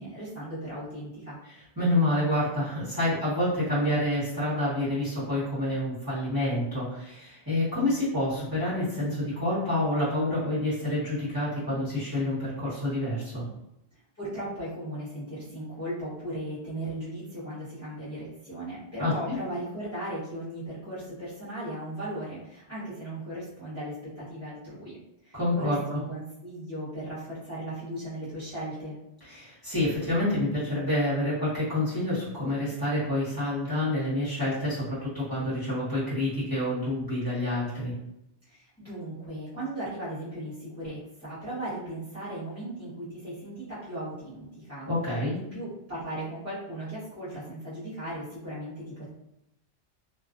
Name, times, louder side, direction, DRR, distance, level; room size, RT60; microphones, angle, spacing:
voice 1, 0.0-1.4 14.1-25.0 25.2-29.0 38.4-44.9 45.3-49.1, right 1 dB, 15° left, -12 dB, 1.0 m, -37 dB
voice 2, 1.8-13.4 19.0-19.4 25.3-26.0 29.3-37.9 44.9-45.4, left 1 dB, 20° right, -12 dB, 1.1 m, -28 dB
2.3 x 2.3 x 2.4 m, 0.84 s
omnidirectional pair, 1.1 m